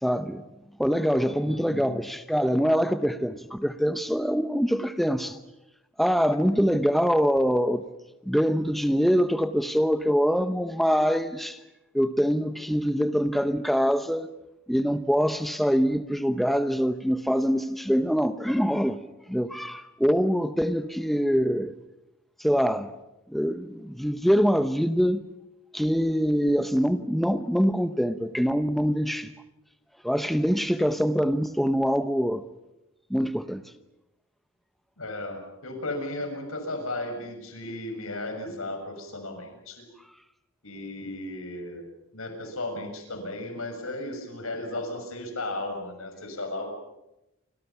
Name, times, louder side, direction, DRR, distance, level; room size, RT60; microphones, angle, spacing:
voice 1, 0.0-0.4 0.8-5.4 6.0-7.8 8.2-11.6 11.9-14.3 14.7-19.0 19.3-21.7 22.4-22.9 23.3-25.2 25.7-29.3 30.0-32.4 33.1-33.6, equal, ahead, 0.8 m, -24 dB
voice 2, 1.4-2.0 35.0-39.9 40.6-41.8 42.1-46.8, left 1 dB, 70° left, 7.0 m, -35 dB
29.5 x 26.0 x 5.9 m
head